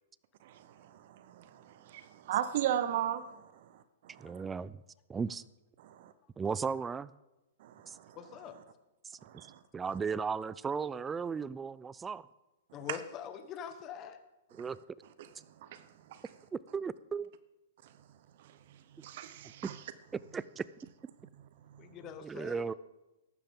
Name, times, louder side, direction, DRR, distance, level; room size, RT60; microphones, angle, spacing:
voice 1, 0.4-3.4 4.0-4.4 5.8-6.1 7.6-8.2 9.2-9.6 15.6-15.8 16.1-16.2 19.0-19.7, right 11 dB, 55° right, 0.8 m, -37 dB
voice 2, 4.2-4.8 5.1-5.4 6.4-7.1 7.9-8.0 9.7-12.2 14.6-14.8 16.5-17.3 20.3-20.6 22.2-22.7, right 5 dB, 15° right, 0.4 m, -35 dB
voice 3, 8.1-8.6 12.7-14.2 21.8-22.6, left 9 dB, 30° left, 1.3 m, -43 dB
15.0 x 11.5 x 3.8 m
hypercardioid pair, 125°, 0 cm